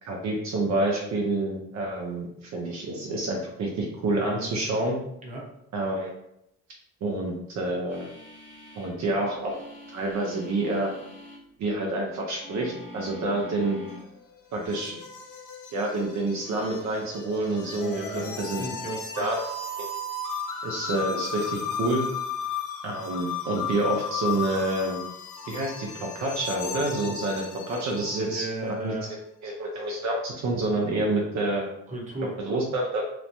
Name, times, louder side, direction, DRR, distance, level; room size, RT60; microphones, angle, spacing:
voice 1, 0.0-5.0 5.7-6.1 7.0-8.1 8.7-9.6 9.9-10.9 11.6-13.8 14.5-14.9 15.7-18.6 19.2-19.4 19.8-19.9 20.6-22.0 22.8-25.0 25.5-28.9 29.4-31.7 32.4-33.0, right 2 dB, 65° right, -1 dB, 0.6 m, -28 dB
sound 1, 7.9-9.0 9.4-11.4 12.4-14.1 14.5-14.7, left 1 dB, 40° left, 1.3 m, -45 dB
sound 2, 13.9-28.5, left 5 dB, 85° left, 0.5 m, -35 dB
voice 2, 17.8-19.3 28.2-29.1 31.9-32.3, right 2 dB, 25° right, -3 dB, 0.9 m, -35 dB
3.1 x 2.1 x 2.6 m, 0.78 s
cardioid pair, 90°, 30 cm